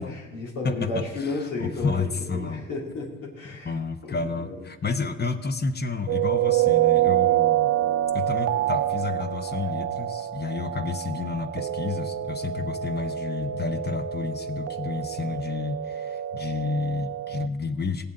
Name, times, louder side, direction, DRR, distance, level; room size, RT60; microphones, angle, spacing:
voice 1, 0.0-3.7 4.0-4.6, left 3 dB, 80° left, -4 dB, 2.7 m, -33 dB
voice 2, 0.6-2.6 3.6-7.7 8.1-18.1, left 4 dB, 35° left, 8 dB, 1.0 m, -30 dB
sound 1, 6.1-17.5, right 13 dB, 55° right, 0.5 m, -26 dB
18.5 x 7.7 x 3.9 m, 1.1 s
cardioid pair, 90°, 30 cm